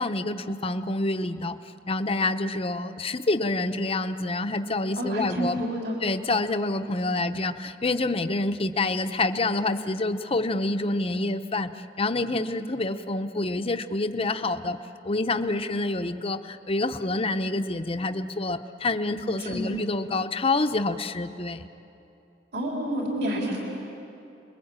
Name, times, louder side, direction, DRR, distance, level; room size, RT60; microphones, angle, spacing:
voice 1, 0.0-1.6 1.9-5.6 6.0-11.7 12.0-14.8 15.0-21.7, left 2 dB, 30° left, 9 dB, 0.8 m, -27 dB
voice 2, 5.0-6.0 19.4-19.7 22.5-23.6, equal, 60° right, -1 dB, 4.2 m, -29 dB
29.5 x 21.5 x 8.8 m, 2.8 s
head